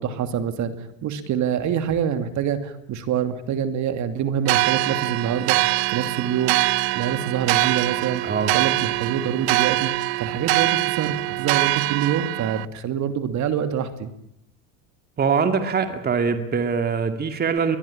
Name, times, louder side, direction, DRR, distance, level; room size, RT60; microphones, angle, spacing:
voice 1, 0.0-5.6 5.9-6.6 6.9-8.2 8.5-14.1, right 8 dB, 45° right, 9 dB, 2.8 m, -26 dB
sound 1, 4.5-12.7, right 23 dB, 70° right, 0.9 m, -23 dB
voice 2, 8.2-8.5 15.2-17.8, right 5 dB, 25° right, 7 dB, 2.4 m, -23 dB
22.5 x 21.5 x 8.8 m, 0.76 s
supercardioid pair, 125°, 39 cm